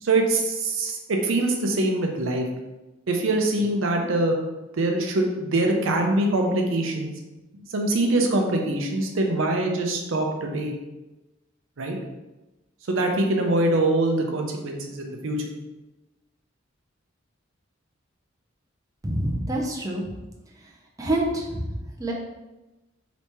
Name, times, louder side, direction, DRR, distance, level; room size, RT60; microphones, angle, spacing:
voice 1, 0.0-2.5 3.1-4.4 4.8-7.1 7.7-10.7 11.8-12.0 12.9-15.4, right 2 dB, 75° right, 2 dB, 0.6 m, -23 dB
voice 2, 19.0-20.1 21.0-21.7 22.0-22.1, right 1 dB, 15° right, -2 dB, 0.4 m, -26 dB
3.3 x 3.0 x 2.9 m, 1.0 s
head